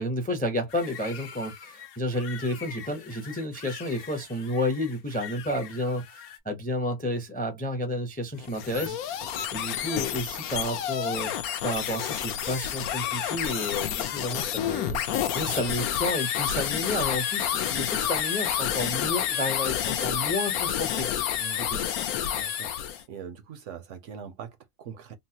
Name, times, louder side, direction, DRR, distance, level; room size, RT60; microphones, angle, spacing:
voice 1, 0.0-9.2 9.5-11.3 11.6-15.0 15.3-21.1 21.6-21.8, left 1 dB, 15° left, 0.4 m, -31 dB
sound 1, 0.7-6.4, left 8 dB, 65° left, 0.6 m, -44 dB
sound 2, 8.4-23.0, left 10 dB, 80° left, 1.1 m, -29 dB
voice 2, 21.4-21.8 22.3-25.1, right 7 dB, 70° right, 0.8 m, -43 dB
3.8 x 2.0 x 2.7 m
omnidirectional pair, 1.5 m